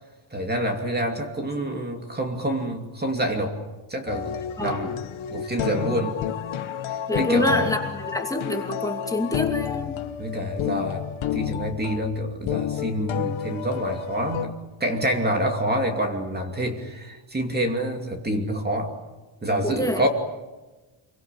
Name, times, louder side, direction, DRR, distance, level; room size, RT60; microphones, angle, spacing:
voice 1, 0.3-3.6 3.9-4.9 5.3-6.2 6.9-7.7 10.2-11.0 11.3-18.9 19.4-20.1, right 1 dB, 20° right, 3 dB, 2.6 m, -27 dB
sound 1, 4.1-14.5, left 10 dB, 85° left, 1.4 m, -30 dB
voice 2, 7.1-10.0 19.6-20.0, left 1 dB, 5° left, 2 dB, 2.7 m, -26 dB
27.0 x 23.5 x 9.1 m, 1.2 s
wide cardioid pair, 165°, 46 cm